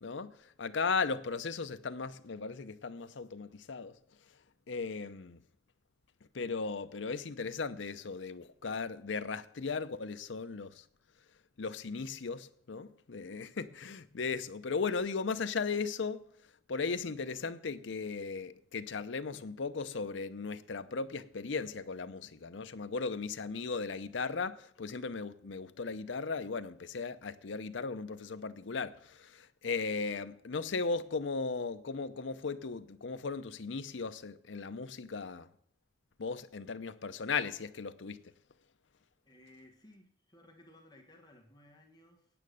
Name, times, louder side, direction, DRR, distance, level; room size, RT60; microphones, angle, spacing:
voice 1, 0.0-3.9 4.7-5.4 6.3-10.8 11.6-16.3 16.7-35.5 36.2-38.2, left 4 dB, 80° left, 0.7 m, -37 dB
voice 2, 39.2-42.3, left 1 dB, 20° left, 1.5 m, -59 dB
8.9 x 8.5 x 6.4 m
head